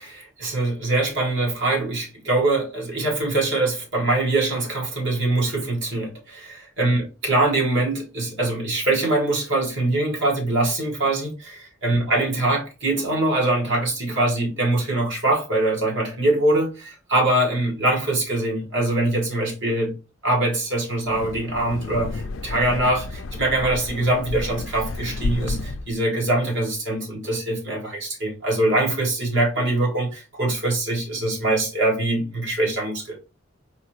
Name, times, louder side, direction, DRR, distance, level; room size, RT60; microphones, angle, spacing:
voice 1, 0.1-19.9 20.2-33.2, right 2 dB, 65° right, 1.8 m, -23 dB
Wind, 20.9-26.0, left 3 dB, 85° left, 0.5 m, -31 dB
4.1 x 2.8 x 3.0 m
head